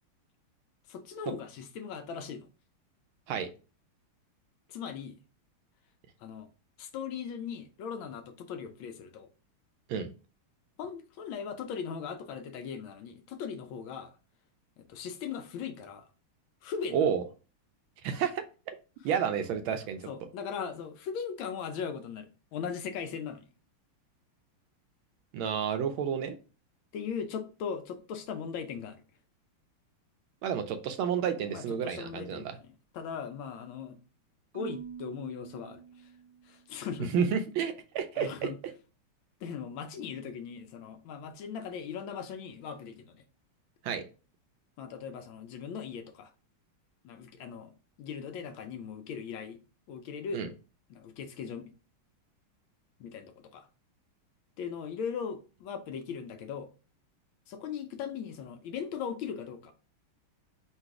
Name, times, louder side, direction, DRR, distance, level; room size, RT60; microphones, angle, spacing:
voice 1, 0.9-2.5 4.7-5.2 6.2-6.5 6.8-9.3 10.8-14.1 14.8-16.1 16.6-17.0 20.1-23.5 26.9-29.0 31.5-34.0 34.5-36.1 36.4-37.1 38.1-38.6 39.4-43.2 44.8-46.3 47.0-47.7 48.0-49.6 49.9-50.4 50.9-51.7 53.0-53.7 54.6-56.7 57.5-59.7, left 6 dB, 75° left, 1.3 m, -39 dB
voice 2, 16.9-17.2 18.0-18.7 19.0-20.1 25.3-26.4 30.4-32.5 37.1-38.5 43.8-44.0 50.3-50.5, right 7 dB, 80° right, 1.4 m, -30 dB
Marimba xylophone / Wood, 34.5-36.7, right 7 dB, 60° right, 0.3 m, -46 dB
3.9 x 2.4 x 4.6 m
omnidirectional pair, 2.3 m